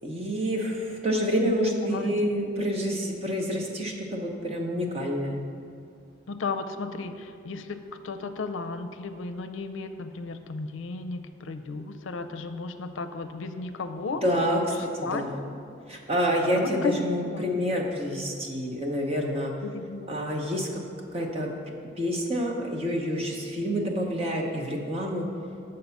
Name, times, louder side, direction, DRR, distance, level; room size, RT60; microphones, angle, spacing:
voice 1, 0.0-5.4 14.2-15.4 15.9-19.5 20.1-20.8 21.1-21.5 22.0-25.3, equal, 30° right, 0 dB, 0.9 m, -28 dB
voice 2, 1.8-2.1 6.3-14.2 15.0-15.3 16.6-17.0 17.3-17.5 19.6-20.1, left 4 dB, 75° left, 9 dB, 0.5 m, -34 dB
6.6 x 5.5 x 7.0 m, 2.4 s
head